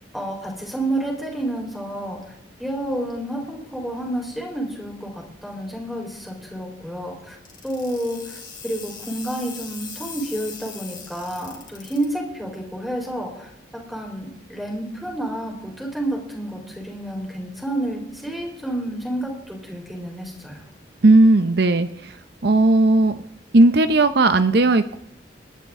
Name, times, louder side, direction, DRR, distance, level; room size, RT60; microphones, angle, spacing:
voice 1, 0.1-2.2 2.6-7.4 7.6-13.5 13.9-20.6, right 1 dB, ahead, -1 dB, 4.1 m, -30 dB
sound 1, 7.4-12.0, left 6 dB, 25° left, 3.3 m, -39 dB
voice 2, 21.0-22.2 22.4-23.2 23.5-25.0, right 2 dB, 60° right, 10 dB, 0.7 m, -16 dB
29.0 x 12.0 x 3.7 m, 0.82 s
head